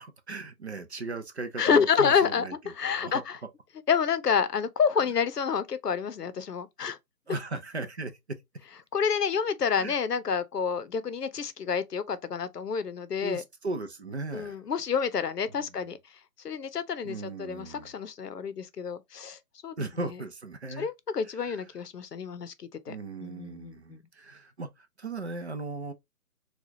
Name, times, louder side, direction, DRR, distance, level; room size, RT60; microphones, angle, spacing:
voice 1, 0.0-3.2 7.3-8.4 9.8-9.9 13.2-14.6 15.6-15.8 17.0-17.9 19.8-20.9 21.2-21.8 22.9-25.9, right 3 dB, 45° right, 0.6 m, -37 dB
voice 2, 1.6-3.4 3.9-7.0 8.9-13.4 14.3-16.0 16.4-19.8 20.8-23.0 23.2-24.0, left 6 dB, 80° left, 0.7 m, -28 dB
4.2 x 2.3 x 2.7 m
figure-of-eight pair, 155°, 47 cm